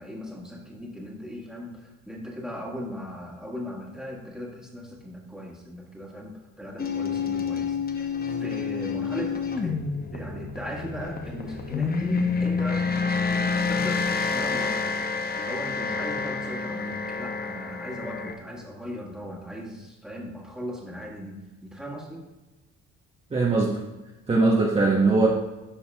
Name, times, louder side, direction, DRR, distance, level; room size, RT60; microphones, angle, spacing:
voice 1, 0.0-9.8 10.1-13.0 13.3-14.9 15.3-22.3, equal, ahead, -2 dB, 1.6 m, -38 dB
sound 1, 6.8-18.3, left 5 dB, 30° left, 0.7 m, -28 dB
voice 2, 23.3-23.8 24.3-25.3, right 3 dB, 20° right, -2 dB, 0.8 m, -20 dB
11.5 x 4.2 x 2.2 m, 1.1 s
cardioid pair, 90°, 30 cm